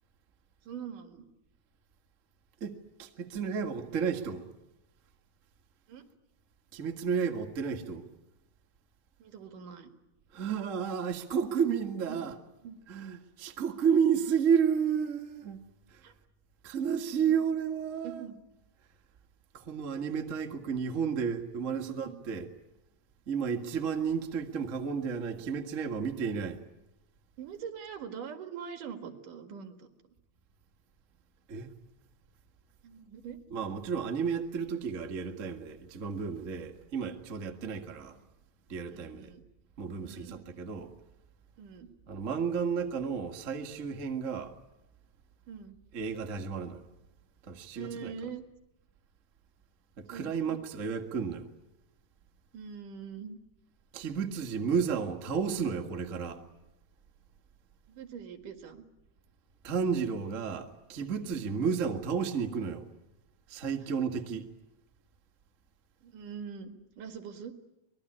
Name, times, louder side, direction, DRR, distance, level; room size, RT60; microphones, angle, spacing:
voice 1, 0.6-1.3 5.9-6.0 9.2-9.9 12.1-12.3 12.6-12.8 16.0-16.1 17.2-17.4 18.0-18.4 19.9-20.1 21.7-22.2 27.4-29.9 32.8-33.4 38.9-39.4 40.0-40.4 41.6-41.9 45.5-45.8 47.7-48.4 50.1-50.6 52.5-53.4 57.9-58.9 61.5-61.6 66.0-67.5, right 7 dB, 60° right, 3.2 m, -43 dB
voice 2, 2.6-4.4 6.7-8.1 10.3-12.4 12.9-15.6 15.9-16.0 16.6-18.3 19.5-22.5 23.3-26.6 31.5-31.7 33.5-38.2 38.7-39.3 39.8-40.9 42.1-44.6 45.9-46.8 47.4-48.1 50.0-51.5 53.9-56.4 59.6-62.9 63.5-64.5, right 6 dB, 35° right, 1.2 m, -32 dB
24.5 x 21.0 x 10.0 m
omnidirectional pair, 4.4 m